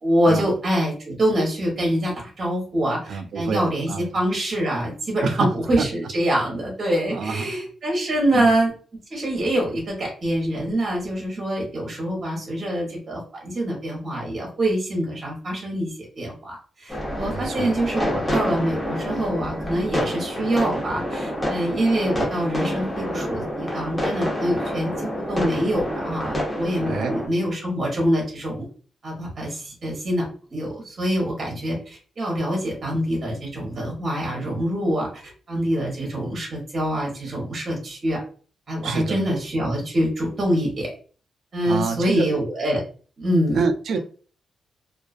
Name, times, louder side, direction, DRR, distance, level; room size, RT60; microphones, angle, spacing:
voice 1, 0.0-8.7 9.1-28.6 29.0-30.3 30.5-35.2 35.5-38.2 38.7-40.9 41.5-42.8 43.2-43.6, right 1 dB, 40° right, 0.9 m, -25 dB
voice 2, 3.1-4.1 5.2-5.5 5.8-5.9 6.3-6.4 7.1-7.5 8.3-8.5 17.2-17.7 26.9-27.1 38.8-39.2 41.6-42.3 43.5-44.0, right 4 dB, 70° right, 0.3 m, -27 dB
sound 1, 16.9-27.3, equal, 5° left, 0.9 m, -28 dB
2.3 x 2.3 x 2.4 m
cardioid pair, 115°, 0 cm